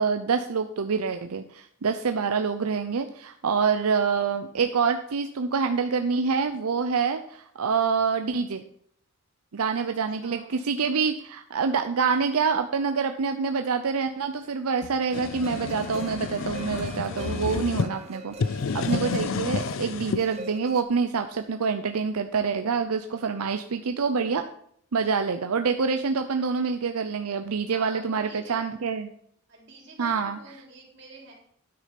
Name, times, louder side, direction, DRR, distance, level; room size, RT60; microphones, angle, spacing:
voice 1, 0.0-8.6 9.5-24.4 24.9-29.1 30.0-30.4, right 5 dB, 90° right, 7 dB, 0.6 m, -26 dB
voice 2, 10.2-10.6 27.6-28.7 29.5-31.3, right 3 dB, 50° right, -2 dB, 3.5 m, -47 dB
sound 1, 14.8-17.9 18.3-20.2, left 5 dB, 60° left, 0.4 m, -30 dB
sound 2, 15.1-20.8, right 1 dB, 30° right, 0.7 m, -43 dB
9.7 x 6.3 x 5.9 m, 0.65 s
head